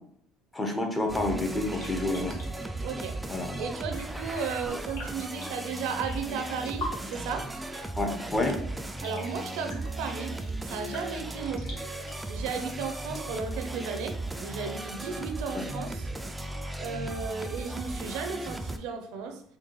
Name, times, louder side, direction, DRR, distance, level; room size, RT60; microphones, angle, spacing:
voice 1, 0.5-2.3 3.3-3.5 8.0-8.6 15.5-15.6, left 2 dB, 15° left, 3 dB, 0.7 m, -29 dB
sound 1, 1.1-18.8, right 2 dB, 10° right, 0.3 m, -36 dB
sound 2, 1.6-12.2, left 1 dB, 80° left, 1.2 m, -46 dB
voice 2, 2.8-3.2 3.6-7.6 9.0-10.4 10.6-11.8 12.3-16.1 16.8-19.4, right 5 dB, 85° right, 6 dB, 0.5 m, -35 dB
4.5 x 2.2 x 3.0 m, 0.65 s
cardioid pair, 110°, 0 cm